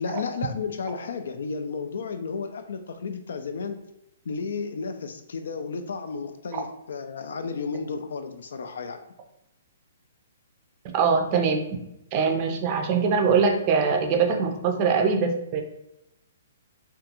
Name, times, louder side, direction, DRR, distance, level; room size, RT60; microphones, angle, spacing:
voice 1, 0.0-3.8 4.3-9.0, left 5 dB, 75° left, 8 dB, 0.3 m, -33 dB
voice 2, 10.9-11.6 12.1-15.6, right 5 dB, 35° right, 4 dB, 0.4 m, -22 dB
2.4 x 2.3 x 2.8 m, 0.84 s
hypercardioid pair, 145°, 0 cm